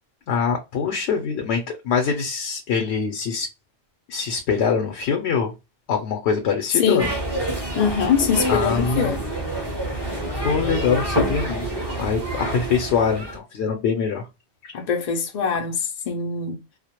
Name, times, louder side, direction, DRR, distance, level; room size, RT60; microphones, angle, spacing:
voice 1, 0.3-1.6 1.8-3.5 4.1-5.5 5.9-7.1 8.5-9.1 10.4-11.7 12.0-14.3, left 6 dB, 80° left, 0.8 m, -23 dB
voice 2, 6.7-7.1 7.7-9.2 14.7-16.6, left 6 dB, 55° left, 0.4 m, -23 dB
sound 1, 7.0-13.4, right 1 dB, 30° right, 0.6 m, -27 dB
2.2 x 2.0 x 2.8 m
omnidirectional pair, 1.1 m